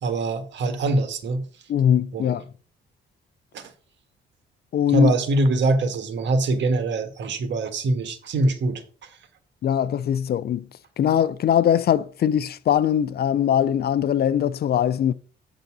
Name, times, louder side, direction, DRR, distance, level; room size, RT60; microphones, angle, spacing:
voice 1, 0.0-1.4 2.1-2.4 3.5-3.7 4.9-9.2, right 2 dB, 65° right, 1.5 m, -23 dB
voice 2, 1.7-2.4 4.7-5.1 9.6-10.6 11.0-15.1, left 9 dB, 55° left, 0.5 m, -21 dB
8.2 x 4.0 x 6.0 m
cardioid pair, 90°, 20 cm